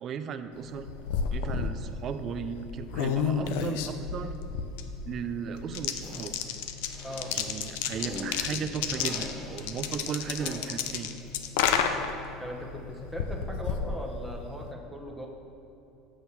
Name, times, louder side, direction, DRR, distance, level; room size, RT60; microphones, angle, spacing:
voice 1, 0.0-0.9 1.3-4.4 5.1-6.3 7.3-11.1, right 7 dB, 40° right, 10 dB, 0.5 m, -36 dB
sound 1, 0.6-14.7, left 7 dB, 80° left, 0.5 m, -32 dB
sound 2, 6.0-6.4 6.9-8.5 8.9-9.8 10.4-10.8, left 1 dB, 30° left, 1.7 m, -43 dB
voice 2, 7.0-7.4 12.4-15.3, equal, ahead, -1 dB, 1.0 m, -39 dB
6.3 x 5.9 x 7.0 m, 2.9 s
supercardioid pair, 135°, 0 cm